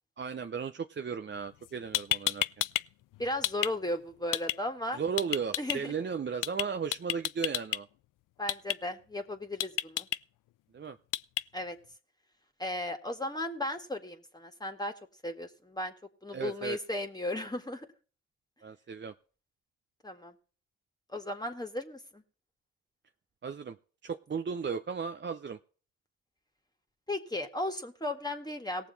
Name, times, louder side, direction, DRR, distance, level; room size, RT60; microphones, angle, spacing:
voice 1, 0.2-2.4 4.9-7.9 10.7-11.0 16.3-16.8 18.6-19.1 23.4-23.8 24.0-25.6, right 6 dB, 35° right, 8 dB, 0.7 m, -35 dB
sound 1, 1.6-1.7 1.9-2.8 3.1-3.7 4.3-4.6 5.2-5.8 6.4-6.6 6.9-7.8 8.5-8.8 9.6-10.2 11.1-11.4, left 15 dB, 70° left, 0.4 m, -30 dB
voice 2, 3.2-5.0 5.6-5.9 8.4-10.1 11.5-11.8 12.6-14.9 15.2-15.9 16.2-17.9 20.0-20.3 21.1-22.2 27.1-28.9, left 1 dB, 10° left, 4 dB, 1.9 m, -35 dB
18.0 x 7.1 x 4.1 m, 0.39 s
supercardioid pair, 50°, 33 cm